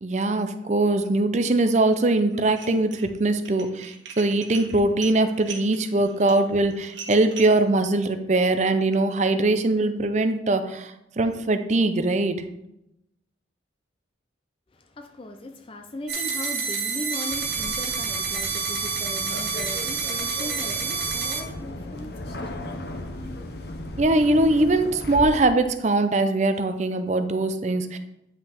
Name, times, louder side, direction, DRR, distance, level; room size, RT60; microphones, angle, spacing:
voice 1, 0.0-12.4 24.0-28.0, right 2 dB, 40° right, 0.5 m, -22 dB
Dishes pots and pans, 2.4-3.1 3.4-7.6, right 6 dB, 75° right, 1.2 m, -40 dB
voice 2, 14.7-22.8, left 1 dB, 30° left, 0.5 m, -38 dB
sound 1, 16.1-21.4, right 5 dB, 60° right, 1.7 m, -28 dB
sound 2, 17.3-25.3, left 1 dB, 55° left, 0.9 m, -37 dB
9.1 x 5.6 x 3.5 m
head